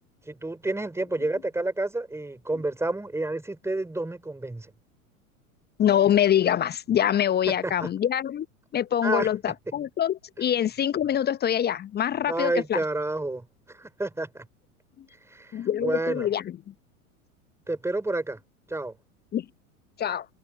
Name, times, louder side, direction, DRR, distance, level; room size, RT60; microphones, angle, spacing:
voice 1, 0.3-4.7 7.6-7.9 9.0-9.3 12.3-14.5 15.3-16.3 17.7-18.4 18.7-19.0, right 2 dB, 5° right, 4.7 m, -30 dB
voice 2, 5.8-8.5 8.7-12.8 15.5-16.4 19.3-19.4 20.0-20.3, left 10 dB, 25° left, 1.2 m, -24 dB
figure-of-eight pair, 85°, 43 cm